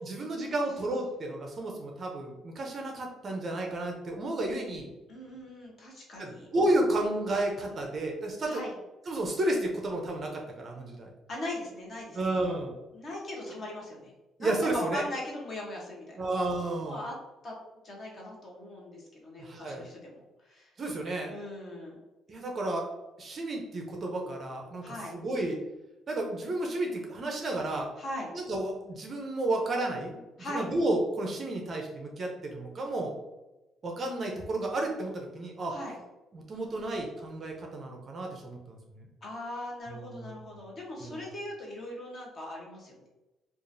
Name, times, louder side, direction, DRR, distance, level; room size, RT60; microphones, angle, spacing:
voice 1, 0.0-4.9 6.2-8.6 9.1-11.1 12.1-12.7 14.4-15.0 16.2-17.0 19.4-19.9 20.8-21.3 22.3-22.9 23.2-25.6 26.1-27.9 28.3-33.1 33.8-35.8 36.3-39.1 39.9-40.5 41.0-41.2, right 1 dB, 30° right, 1 dB, 0.5 m, -32 dB
voice 2, 5.1-6.5 8.4-8.7 11.3-12.4 12.9-14.1 14.4-16.3 16.8-17.1 17.4-17.5 17.8-20.7 21.3-22.0 24.8-25.1 28.0-28.3 30.4-30.7 35.7-36.0 39.2-43.1, left 1 dB, 30° left, -2 dB, 0.9 m, -39 dB
4.8 x 2.4 x 2.6 m, 1.0 s
cardioid pair, 180°, 0 cm